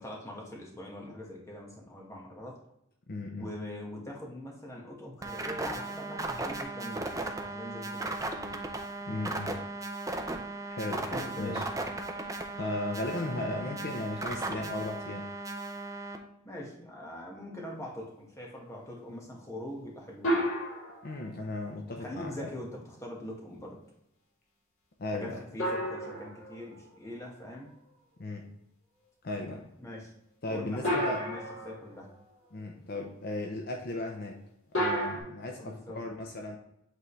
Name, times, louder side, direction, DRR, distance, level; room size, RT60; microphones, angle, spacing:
voice 1, 0.0-2.6 3.4-8.7 11.1-11.6 16.4-20.5 22.0-23.8 25.1-27.7 29.8-30.1 30.5-32.1 35.5-36.0, left 1 dB, 15° left, -2 dB, 1.4 m, -42 dB
voice 2, 3.1-3.5 9.1-9.6 10.7-11.7 12.6-15.3 21.0-22.5 25.0-25.4 28.2-28.4 29.2-29.7 30.4-31.3 32.5-34.4 34.8-36.6, left 2 dB, 45° left, 1 dB, 0.7 m, -36 dB
sound 1, 5.2-16.2, right 2 dB, 15° right, 0.5 m, -36 dB
sound 2, 20.2-21.3 25.6-27.1 30.8-32.0 34.7-35.2, equal, 65° left, 2.5 m, -31 dB
8.3 x 3.8 x 3.1 m, 0.78 s
head